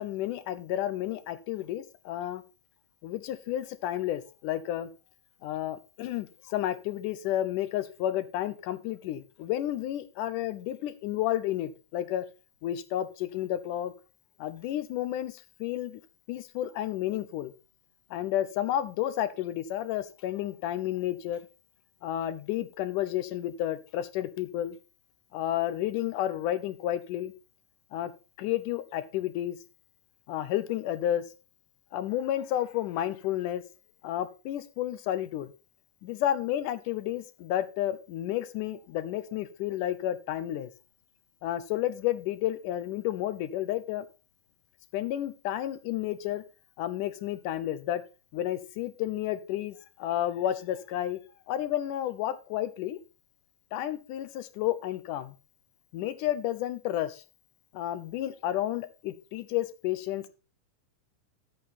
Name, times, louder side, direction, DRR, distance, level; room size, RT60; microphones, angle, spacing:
voice 1, 0.0-2.4 3.0-4.9 5.4-12.2 12.6-13.9 14.4-16.0 16.3-17.5 18.1-21.4 22.0-24.8 25.3-27.3 27.9-28.1 28.4-29.6 30.3-31.2 31.9-33.6 34.0-35.5 36.0-40.7 41.4-44.1 44.9-46.4 46.8-48.0 48.3-51.2 51.5-53.0 53.7-55.4 55.9-57.2 57.7-60.3, left 12 dB, 75° left, 14 dB, 2.2 m, -31 dB
10.5 x 8.3 x 4.2 m, 0.32 s
omnidirectional pair, 4.1 m